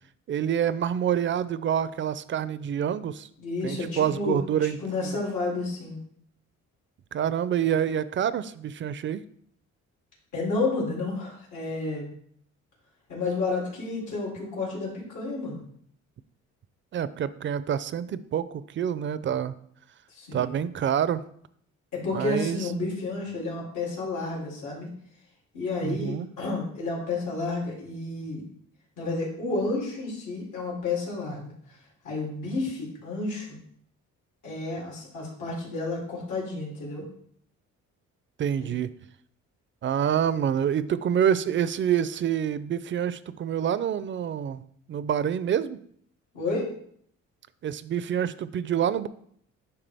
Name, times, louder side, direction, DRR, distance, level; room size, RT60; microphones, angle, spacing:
voice 1, 0.3-3.3 3.6-5.2 7.1-9.2 16.9-19.5 20.3-21.2 22.1-22.7 25.8-26.3 38.4-38.9 39.8-44.6 44.9-45.8 47.6-49.1, right 9 dB, 40° right, 15 dB, 0.4 m, -27 dB
voice 2, 3.4-4.4 4.8-6.0 10.3-12.1 13.1-15.6 20.1-20.6 21.9-24.9 25.5-28.4 29.0-31.5 32.0-33.6 34.4-37.1 46.3-46.7, left 3 dB, 80° left, -3 dB, 3.1 m, -31 dB
10.0 x 3.5 x 3.4 m, 0.65 s
cardioid pair, 90°, 30 cm